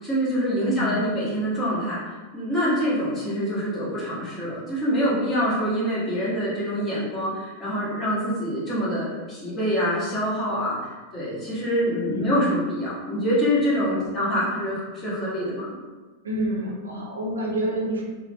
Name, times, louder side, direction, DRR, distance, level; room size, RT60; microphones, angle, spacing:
voice 1, 0.0-15.7, equal, 15° left, -8 dB, 1.2 m, -25 dB
voice 2, 0.5-1.0 12.1-12.5 12.9-13.0 13.8-14.2 16.2-18.0, equal, 70° right, -1 dB, 0.5 m, -29 dB
3.1 x 2.1 x 2.7 m, 1.3 s
figure-of-eight pair, 90°, 0 cm